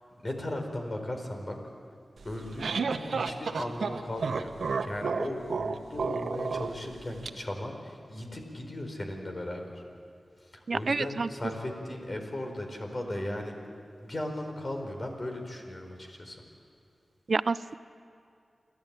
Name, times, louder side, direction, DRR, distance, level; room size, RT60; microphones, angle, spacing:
voice 1, 0.2-1.6 2.2-4.5 4.8-9.8 10.5-13.6 14.0-16.4, left 1 dB, 40° left, 3 dB, 4.4 m, -37 dB
sound 1, 2.2-7.3, right 4 dB, 85° right, 0.9 m, -32 dB
voice 2, 10.7-11.3 17.3-17.7, right 4 dB, 65° right, 15 dB, 0.6 m, -28 dB
29.0 x 12.5 x 8.8 m, 2.4 s
cardioid pair, 45°, 0 cm